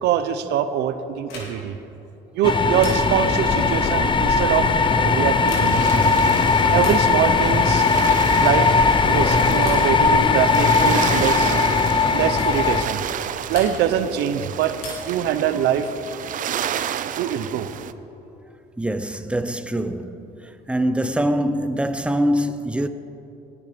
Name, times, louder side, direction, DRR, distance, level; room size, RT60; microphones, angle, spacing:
voice 1, 0.0-1.8 2.3-4.7 5.0-6.2 6.7-7.9 8.4-8.7 9.0-11.6 12.1-13.0 13.5-14.7 15.1-15.9 17.2-17.7, right 9 dB, 80° right, 0.8 m, -23 dB
sound 1, 1.2-1.8 2.8-3.4 5.3-6.0 6.8-7.2 8.4-8.8 9.7-10.0 11.3-11.5 12.4-12.6 13.5-14.1 14.8-15.3 16.7-17.4, left 3 dB, 90° left, 3.6 m, -39 dB
sound 2, 2.4-12.8, left 4 dB, 30° left, 0.8 m, -18 dB
sound 3, 5.7-17.9, right 10 dB, 50° right, 0.5 m, -31 dB
voice 2, 18.8-22.9, equal, 5° right, 0.7 m, -24 dB
19.0 x 9.7 x 5.2 m
cardioid pair, 110°, 17 cm